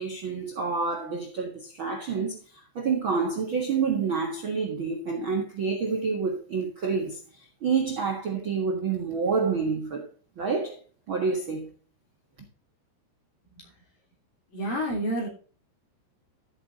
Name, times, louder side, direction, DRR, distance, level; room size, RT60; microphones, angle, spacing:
voice 1, 0.0-10.1 10.4-10.8 11.1-11.7, right 5 dB, 85° right, 1.1 m, -28 dB
voice 2, 14.5-15.3, equal, 50° left, 4.8 m, -29 dB
13.0 x 8.2 x 3.7 m
omnidirectional pair, 5.2 m